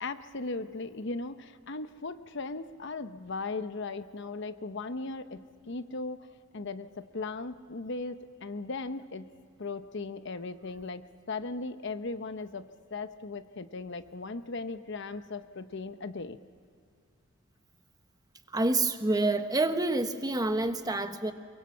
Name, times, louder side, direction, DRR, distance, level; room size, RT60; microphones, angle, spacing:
voice 1, 0.0-6.2 6.5-9.3 9.6-16.4, left 3 dB, 60° left, 11 dB, 0.9 m, -37 dB
voice 2, 18.5-21.3, right 2 dB, 20° right, 8 dB, 1.1 m, -27 dB
23.5 x 23.0 x 7.1 m, 2.3 s
head